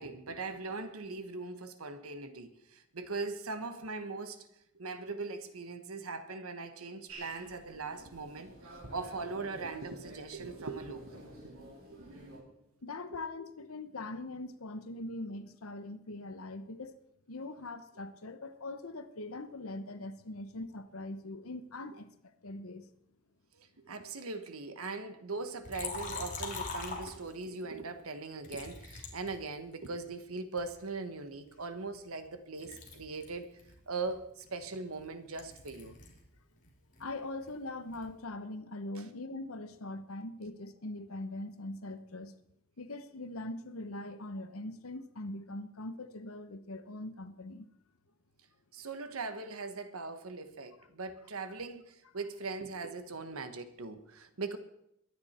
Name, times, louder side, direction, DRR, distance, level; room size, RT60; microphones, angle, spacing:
voice 1, 0.0-4.5 4.7-11.3 11.9-12.0 13.1-13.2 23.5-33.5 33.9-35.9 38.9-39.0 48.7-54.6, right 3 dB, 90° right, 1.3 m, -40 dB
sound 1, 7.1-12.4, right 1 dB, 70° right, 3.8 m, -51 dB
voice 2, 12.8-17.0 17.3-22.8 37.0-42.3 42.8-47.7, left 2 dB, 85° left, 1.0 m, -42 dB
Liquid, 25.6-27.6 28.4-30.0 30.6-32.3 32.6-36.3 36.5-38.2, left 4 dB, 35° left, 2.8 m, -44 dB
22.5 x 9.7 x 4.4 m
head